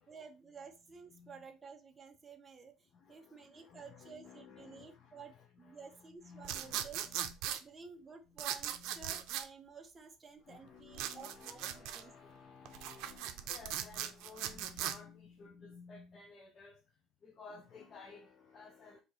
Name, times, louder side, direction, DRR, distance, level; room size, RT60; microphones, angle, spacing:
voice 1, 0.0-7.0 7.6-12.3, right 5 dB, 20° right, 0.6 m, -53 dB
voice 2, 1.1-1.4 2.9-7.7 8.7-9.2 10.4-19.0, left 5 dB, 40° left, 0.6 m, -55 dB
sound 1, 6.4-7.6 8.4-9.5 10.9-12.0 12.7-15.0, right 11 dB, 85° right, 0.5 m, -39 dB
4.4 x 2.7 x 4.0 m
cardioid pair, 140°, 0 cm